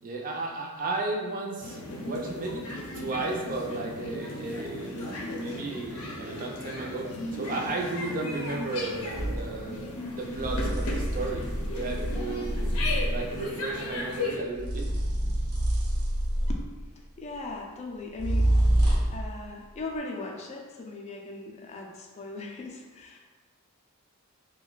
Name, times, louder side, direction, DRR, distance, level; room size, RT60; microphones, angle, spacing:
voice 1, 0.0-2.6 2.9-12.7 13.1-14.9, right 3 dB, 40° right, -1 dB, 0.4 m, -34 dB
sound 1, 1.6-14.4, left 2 dB, 85° left, 0.6 m, -36 dB
sound 2, 9.1-9.4 10.3-13.3 14.5-16.8 18.2-19.3, right 1 dB, 85° right, 0.8 m, -26 dB
voice 2, 17.2-18.5 19.1-23.2, left 3 dB, 30° left, 1 dB, 0.3 m, -38 dB
2.5 x 2.2 x 3.8 m, 1.3 s
head